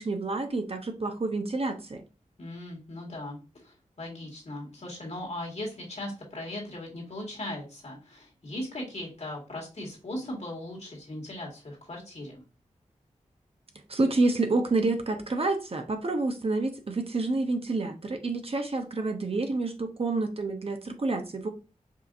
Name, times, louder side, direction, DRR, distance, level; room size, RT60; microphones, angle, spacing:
voice 1, 0.0-2.0 13.9-21.5, right 3 dB, 45° right, 5 dB, 0.8 m, -28 dB
voice 2, 2.4-12.4, left 1 dB, 55° left, -2 dB, 2.0 m, -38 dB
5.4 x 2.6 x 2.6 m, 0.32 s
cardioid pair, 45°, 14 cm